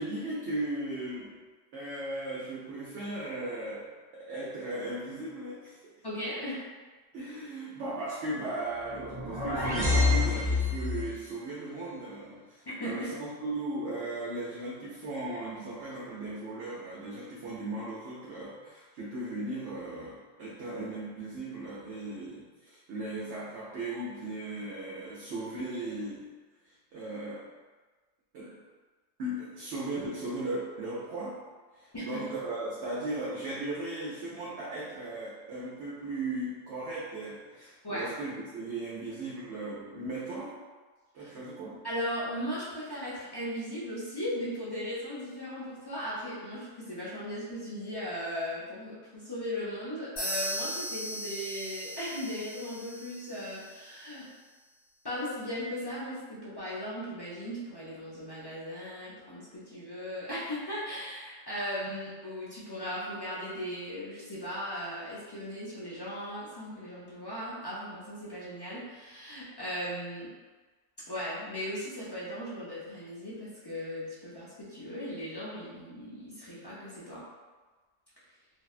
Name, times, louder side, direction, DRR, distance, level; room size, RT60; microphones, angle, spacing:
voice 1, 0.0-1.4 1.7-6.0 7.1-26.3 26.6-27.5 28.3-28.6 29.2-31.5 31.7-40.6 41.1-41.9, right 2 dB, 70° right, -6 dB, 0.8 m, -37 dB
voice 2, 6.0-6.7 12.7-13.2 31.9-32.2 37.8-38.2 41.2-41.3 41.8-54.3 55.0-70.3 71.1-77.2, equal, 40° left, -9 dB, 0.3 m, -37 dB
sound 1, 8.9-11.2, left 3 dB, 30° right, 0.5 m, -27 dB
sound 2, 50.2-53.9, equal, 65° left, 1.6 m, -38 dB
3.2 x 2.1 x 2.4 m, 1.3 s
omnidirectional pair, 1.3 m